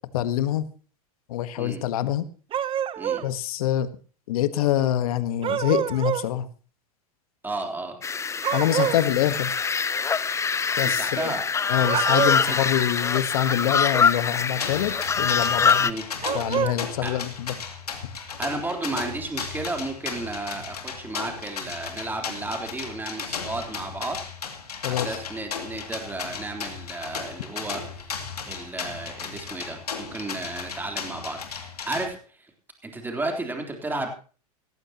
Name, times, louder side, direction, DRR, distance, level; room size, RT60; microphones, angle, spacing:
voice 1, 0.1-0.7 1.3-2.3 3.2-3.9 4.3-6.5 8.5-9.5 10.8-11.3 11.7-15.9 16.3-17.5 24.8-25.1, left 12 dB, 70° left, 13 dB, 1.3 m, -25 dB
sound 1, 2.5-3.3 5.4-6.3 8.4-9.1 11.8-12.6 16.2-16.8, right 9 dB, 30° right, 0.9 m, -26 dB
voice 2, 7.4-8.0 8.7-8.9 10.8-11.5 12.5-12.6 15.8-16.0 17.0-17.2 18.4-24.2 24.9-28.1 28.4-32.2 32.8-34.1, right 2 dB, 10° right, 3 dB, 3.6 m, -33 dB
sound 2, 8.0-15.9, left 6 dB, 15° left, 0.6 m, -24 dB
sound 3, 14.6-32.1, left 6 dB, 90° left, 2.6 m, -35 dB
18.0 x 14.5 x 3.0 m, 0.38 s
hypercardioid pair, 100°, 19 cm